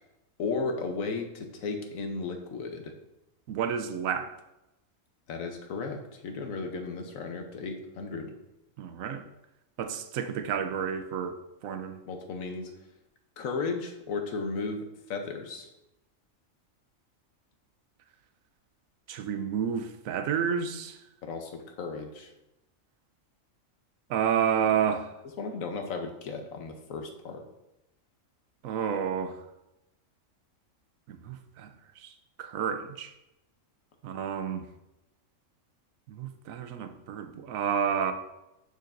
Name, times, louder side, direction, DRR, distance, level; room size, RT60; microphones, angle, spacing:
voice 1, 0.4-2.9 5.3-8.3 12.0-12.7 13.4-15.7 21.2-22.3 25.4-27.4, left 4 dB, 90° left, 5 dB, 1.3 m, -35 dB
voice 2, 3.5-4.3 8.8-9.2 9.8-11.4 11.6-12.0 19.1-21.0 24.1-25.1 28.6-29.4 31.1-31.7 32.0-32.1 32.4-33.1 34.0-34.6 36.1-38.1, right 7 dB, 85° right, 8 dB, 1.1 m, -30 dB
6.6 x 6.4 x 2.6 m, 0.90 s
omnidirectional pair, 1.4 m